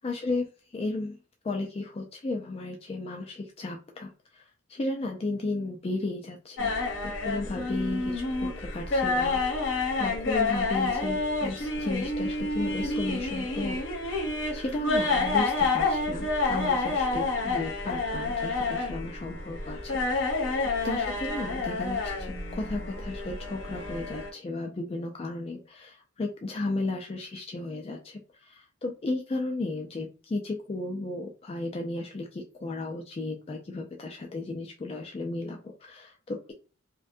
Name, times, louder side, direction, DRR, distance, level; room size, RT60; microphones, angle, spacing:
voice 1, 0.0-1.2 1.4-6.7 7.0-20.4 20.8-36.5, left 2 dB, 30° left, 2 dB, 0.3 m, -34 dB
sound 1, 6.6-24.3, left 3 dB, 65° left, 0.8 m, -29 dB
2.5 x 2.1 x 2.5 m, 0.34 s
head